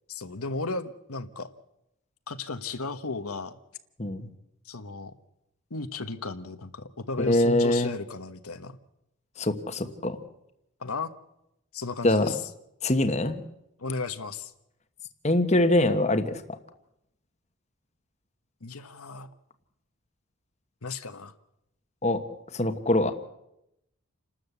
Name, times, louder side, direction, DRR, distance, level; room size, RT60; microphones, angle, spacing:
voice 1, 0.1-1.5 2.3-3.6 4.6-5.1 5.7-8.8 10.8-11.1 11.7-12.4 13.8-14.5 18.6-19.3 20.8-21.3, left 3 dB, 85° left, 9 dB, 1.3 m, -34 dB
voice 2, 7.2-7.9 9.4-10.2 12.0-12.3 12.8-13.4 15.2-16.4 22.0-22.2 22.5-23.1, left 1 dB, 30° left, 8 dB, 1.2 m, -23 dB
28.5 x 13.0 x 8.2 m, 0.84 s
head